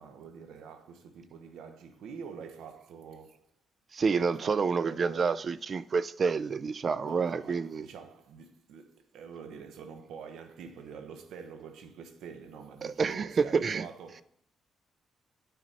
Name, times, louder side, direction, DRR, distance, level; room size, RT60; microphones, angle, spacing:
voice 1, 0.0-3.5 4.0-5.7 7.0-14.2, right 6 dB, 80° right, 0.9 m, -46 dB
voice 2, 3.9-7.8 12.8-13.8, right 5 dB, 45° right, 0.3 m, -28 dB
9.1 x 4.1 x 4.2 m
cardioid pair, 80°, 0 cm